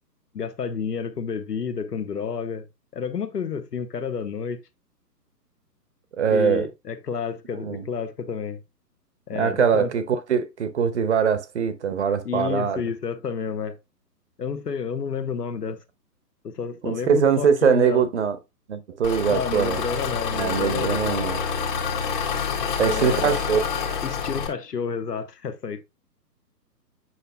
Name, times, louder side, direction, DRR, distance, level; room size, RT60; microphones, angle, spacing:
voice 1, 0.3-2.7 2.9-4.6 6.3-8.6 9.3-9.9 12.2-13.8 14.4-15.8 16.4-18.0 19.3-21.2 22.8-23.4 24.0-25.9, left 6 dB, 70° left, 1.3 m, -30 dB
voice 2, 6.2-6.7 7.6-7.8 9.3-12.8 16.8-18.4 18.7-19.8 20.3-21.4 22.8-23.6, right 6 dB, 45° right, 0.9 m, -22 dB
Engine, 19.0-24.5, left 6 dB, 30° left, 1.4 m, -27 dB
7.9 x 5.9 x 2.2 m
figure-of-eight pair, 140°, 50 cm